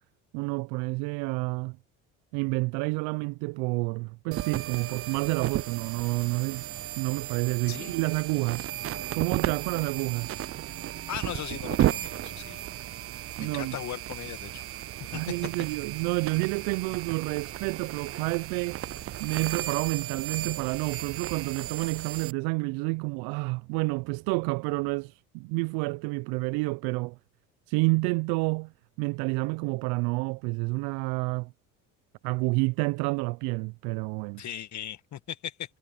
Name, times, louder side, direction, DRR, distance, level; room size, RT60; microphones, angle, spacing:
voice 1, 0.3-1.8 2.3-6.7 7.0-8.7 9.1-10.3 13.4-13.8 15.1-18.8 19.2-27.2 27.7-28.7 29.0-31.5 32.2-34.4, right 27 dB, 75° right, 0.7 m, -29 dB
sound 1, 4.3-22.3, right 13 dB, 40° right, 0.5 m, -34 dB
voice 2, 11.1-12.6 13.4-14.6 15.1-15.2 34.4-35.8, left 10 dB, 45° left, 1.8 m, -38 dB
hypercardioid pair, 70°, 38 cm